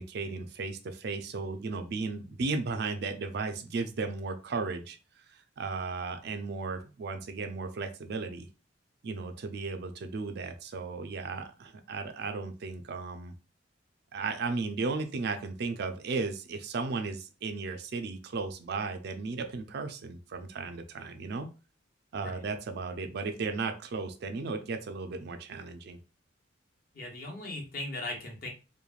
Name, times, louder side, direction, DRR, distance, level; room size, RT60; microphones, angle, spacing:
voice 1, 0.0-5.0 5.3-8.5 9.0-13.3 14.1-21.5 22.1-26.0, right 4 dB, 60° right, 7 dB, 0.4 m, -35 dB
voice 2, 26.9-28.5, left 2 dB, 55° left, 0 dB, 0.9 m, -38 dB
3.1 x 2.1 x 2.3 m, 0.32 s
head